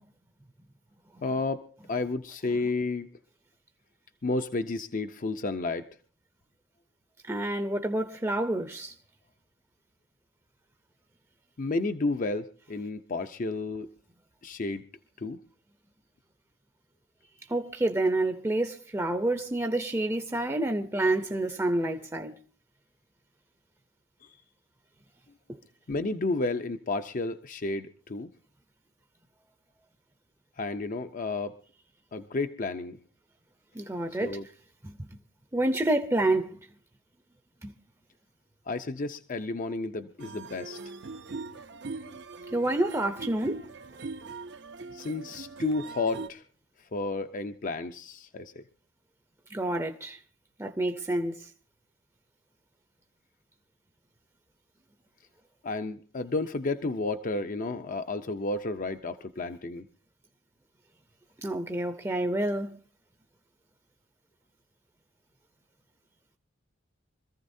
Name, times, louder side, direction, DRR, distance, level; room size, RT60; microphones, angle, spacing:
voice 1, 1.2-3.1 4.2-5.9 11.6-13.9 14.4-14.8 15.2-15.4 24.2-24.4 25.9-28.3 30.6-31.6 32.1-33.0 34.2-34.4 38.7-40.8 42.0-42.2 44.9-46.4 46.9-48.6 55.6-59.9, left 3 dB, 45° left, 0.6 m, -32 dB
voice 2, 7.3-8.9 17.5-22.3 33.7-34.4 34.8-35.1 35.5-36.6 37.6-37.7 42.5-43.6 49.5-50.2 50.6-51.5 61.4-62.8, right 1 dB, 15° right, 0.6 m, -28 dB
sound 1, 40.2-46.3, right 3 dB, 65° right, 0.7 m, -41 dB
25.5 x 14.5 x 2.7 m
head